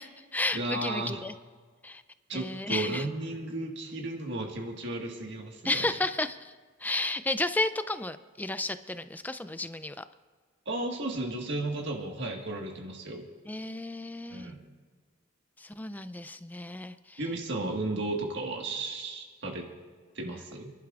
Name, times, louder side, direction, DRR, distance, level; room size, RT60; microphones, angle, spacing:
voice 1, 0.0-1.3 1.8-2.0 2.3-3.1 5.6-6.5 6.8-10.0 13.5-14.5 15.6-17.2, left 2 dB, 10° left, 11 dB, 0.4 m, -32 dB
voice 2, 0.5-1.2 2.3-5.9 10.6-13.2 14.3-14.7 17.2-19.7 20.1-20.7, right 2 dB, 60° right, 1 dB, 1.7 m, -34 dB
30.0 x 11.5 x 2.5 m, 1.5 s
head